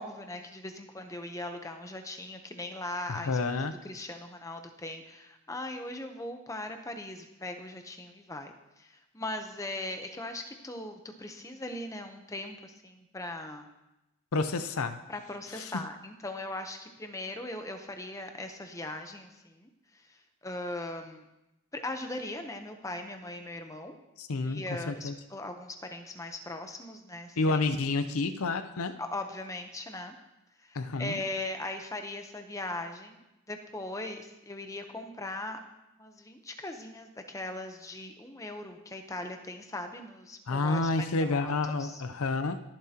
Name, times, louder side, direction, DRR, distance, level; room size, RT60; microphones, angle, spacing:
voice 1, 0.0-3.4 3.8-13.7 15.1-21.2 21.7-23.9 24.4-27.6 29.0-30.2 30.6-35.6 36.0-41.5 41.8-42.0, left 2 dB, 15° left, 5 dB, 0.8 m, -39 dB
voice 2, 3.1-3.8 14.3-15.0 15.5-15.8 24.2-25.1 27.4-29.0 30.7-31.2 40.5-42.6, left 3 dB, 80° left, 11 dB, 0.6 m, -29 dB
21.0 x 7.4 x 2.9 m, 0.96 s
head